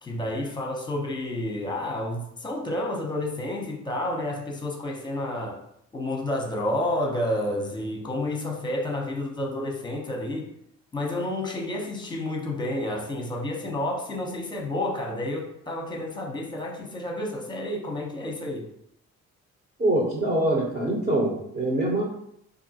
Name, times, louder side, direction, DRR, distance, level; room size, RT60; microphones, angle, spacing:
voice 1, 0.0-5.6 5.9-10.5 10.9-18.7, left 1 dB, 15° left, 0.9 m, -30 dB
voice 2, 19.8-22.0, right 1 dB, 35° right, 1.0 m, -24 dB
3.6 x 2.6 x 2.8 m
cardioid pair, 90°, 30 cm